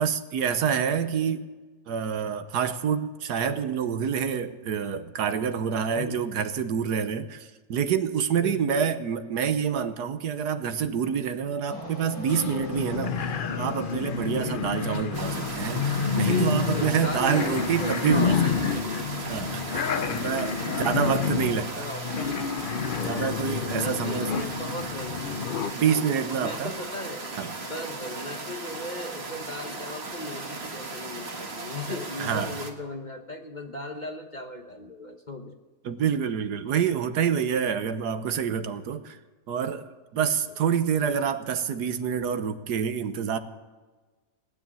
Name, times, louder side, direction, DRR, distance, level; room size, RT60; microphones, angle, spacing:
voice 1, 0.0-1.4 1.9-13.1 13.6-18.4 18.6-18.8 19.2-21.8 23.0-24.4 25.7-26.7 27.4-27.5 32.2-32.5 35.8-39.2 39.5-39.9 40.1-43.4, right 7 dB, 75° right, 10 dB, 1.5 m, -27 dB
voice 2, 6.0-6.3 8.3-8.9 14.3-14.9 16.2-19.0 19.8-23.4 23.8-26.1 26.4-27.3 27.6-35.5 40.2-40.3, left 2 dB, 30° left, 4 dB, 1.0 m, -38 dB
sound 1, 11.7-18.2, right 1 dB, 90° left, 4.2 m, -40 dB
sound 2, 12.3-25.7, left 6 dB, 60° left, 0.5 m, -29 dB
sound 3, 15.1-32.7, right 3 dB, 40° right, 1.8 m, -37 dB
18.5 x 10.0 x 7.5 m, 1.3 s
omnidirectional pair, 1.8 m